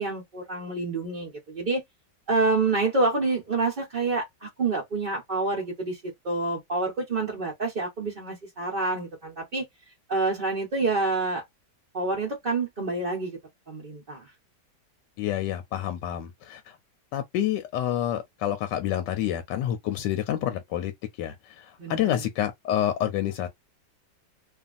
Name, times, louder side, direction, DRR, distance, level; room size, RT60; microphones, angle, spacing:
voice 1, 0.0-1.8 2.3-9.6 10.1-11.4 11.9-13.4 13.7-14.3 21.8-22.3, right 3 dB, 40° right, 0.7 m, -28 dB
voice 2, 15.2-16.8 17.1-20.9 21.2-23.5, left 11 dB, 85° left, 1.2 m, -28 dB
2.8 x 2.5 x 2.4 m
omnidirectional pair, 1.9 m